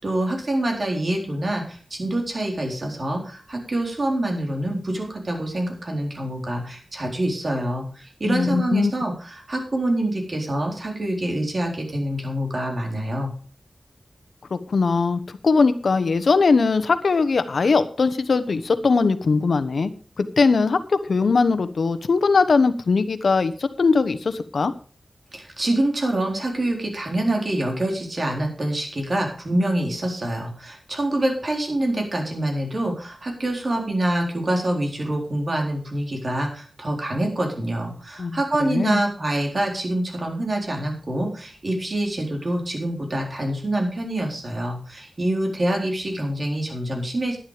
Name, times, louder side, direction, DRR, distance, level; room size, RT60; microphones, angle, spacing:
voice 1, 0.0-13.3 25.3-47.4, right 1 dB, 50° right, 1 dB, 4.0 m, -26 dB
voice 2, 8.3-8.9 14.5-19.9 20.2-24.7 38.2-39.0, left 4 dB, 90° left, 12 dB, 1.0 m, -20 dB
11.0 x 11.0 x 5.0 m, 0.39 s
wide cardioid pair, 80°, 0 cm